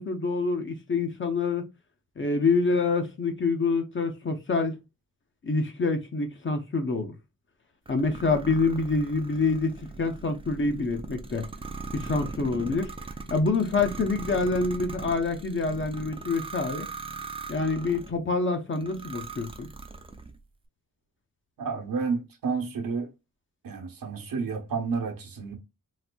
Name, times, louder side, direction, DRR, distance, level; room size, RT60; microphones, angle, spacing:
voice 1, 0.0-1.6 2.2-4.8 5.4-7.1 7.9-11.4 11.9-12.9 13.3-16.9 17.5-19.7, left 3 dB, 35° left, 0.6 m, -26 dB
sound 1, 7.9-18.2 18.7-20.4, right 4 dB, 15° right, 0.3 m, -40 dB
voice 2, 21.6-23.1 23.6-25.5, right 5 dB, 80° right, 0.9 m, -30 dB
4.1 x 2.5 x 2.2 m
wide cardioid pair, 135°, 33 cm